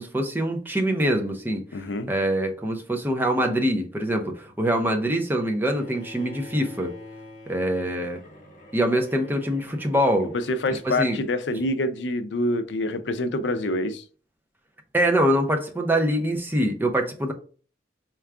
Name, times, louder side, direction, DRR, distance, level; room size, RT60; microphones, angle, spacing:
voice 1, 0.0-1.6 2.1-6.9 7.5-8.2 8.7-10.3 10.9-11.2 14.9-17.3, right 1 dB, 10° right, 0.6 m, -24 dB
voice 2, 1.7-2.1 10.3-14.0, left 1 dB, 85° left, 0.5 m, -26 dB
Bowed string instrument, 5.7-11.8, left 2 dB, 50° left, 0.9 m, -46 dB
4.5 x 2.3 x 3.5 m
head